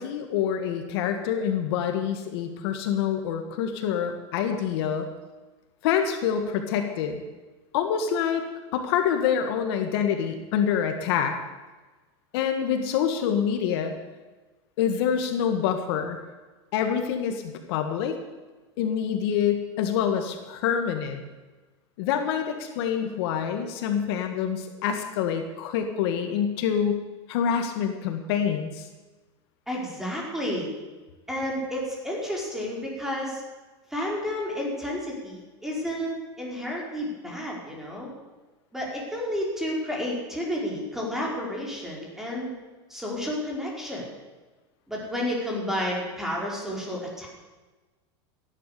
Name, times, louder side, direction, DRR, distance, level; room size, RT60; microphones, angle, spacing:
voice 1, 0.0-5.1 5.8-7.2 7.7-8.4 8.7-11.4 12.3-13.9 14.8-16.2 16.7-18.2 18.8-21.2 22.0-27.0 27.3-28.9, left 8 dB, 65° left, 6 dB, 1.8 m, -26 dB
voice 2, 29.7-30.7 31.3-33.4 33.9-38.1 38.7-42.5 42.9-44.0 44.9-47.3, equal, 5° right, -3 dB, 4.9 m, -31 dB
16.0 x 11.0 x 6.9 m, 1.2 s
supercardioid pair, 130°, 14 cm